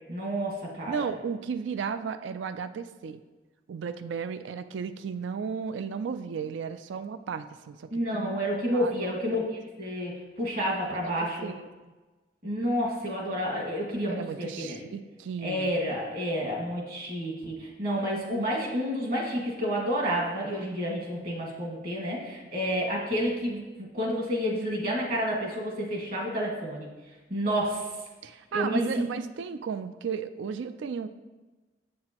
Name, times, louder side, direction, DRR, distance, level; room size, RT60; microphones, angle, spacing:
voice 1, 0.1-1.0 7.9-11.5 12.4-14.8 15.4-23.6 23.9-26.9 27.3-27.9 28.5-29.1, equal, 50° right, -1 dB, 1.8 m, -30 dB
voice 2, 0.9-3.2 3.7-8.4 8.7-9.1 10.8-11.7 14.1-15.7 28.2-31.1, right 6 dB, 75° right, 11 dB, 0.3 m, -34 dB
7.5 x 7.5 x 3.0 m, 1.2 s
head